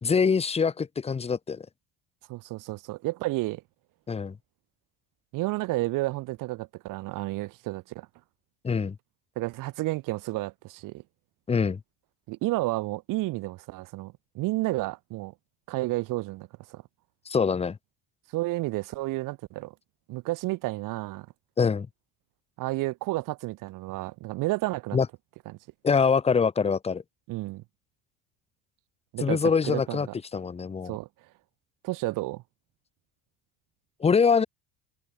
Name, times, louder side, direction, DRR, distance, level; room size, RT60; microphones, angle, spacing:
voice 1, 0.0-1.7 4.1-4.4 8.6-9.0 11.5-11.8 17.3-17.8 21.6-21.9 24.9-25.1 25.8-27.0 29.2-30.1 30.3-31.0 34.0-34.4, left 5 dB, 15° left, 2.2 m, -24 dB
voice 2, 2.3-3.6 5.3-8.1 9.4-11.0 12.3-15.3 15.7-16.8 18.3-19.7 20.1-21.3 22.6-25.0 25.5-25.6 27.3-27.6 29.1-30.1 30.8-31.1 31.8-32.4, right 19 dB, 60° right, 4.8 m, -31 dB
open air
cardioid pair, 170°, 36 cm